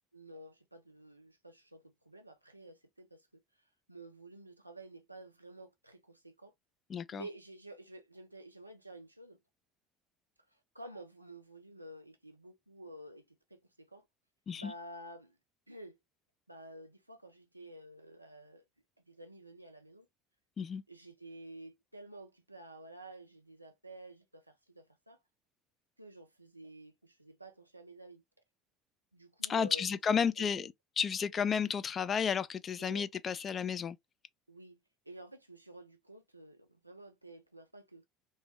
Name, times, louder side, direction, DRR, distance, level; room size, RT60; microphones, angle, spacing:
voice 1, 0.1-3.3 3.9-6.5 7.1-9.4 10.7-14.0 14.5-15.4 15.7-16.0 16.5-18.6 19.1-20.1 20.9-25.2 26.0-28.2 29.1-30.7 32.8-33.1 34.5-34.8 35.1-38.0, right 1 dB, 90° right, 0.4 m, -51 dB
voice 2, 6.9-7.3 14.5-14.7 20.6-20.8 29.4-34.0, left 7 dB, 35° left, 0.3 m, -32 dB
2.2 x 2.0 x 3.2 m
figure-of-eight pair, 65°, 0 cm